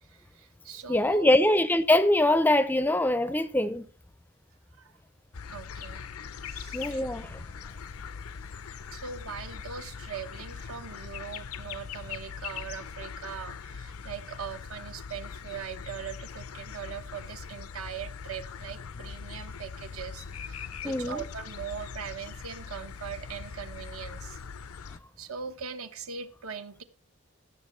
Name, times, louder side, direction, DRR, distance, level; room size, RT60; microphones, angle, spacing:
voice 1, 0.0-1.3 4.8-4.9 5.5-6.0 6.4-7.0 8.9-24.4 24.8-26.8, right 7 dB, 80° right, 1.0 m, -41 dB
voice 2, 0.9-3.8 6.7-7.3 20.8-21.2, left 1 dB, 10° left, 0.4 m, -23 dB
sound 1, 5.3-25.0, left 6 dB, 90° left, 0.5 m, -41 dB
15.5 x 6.9 x 3.1 m
head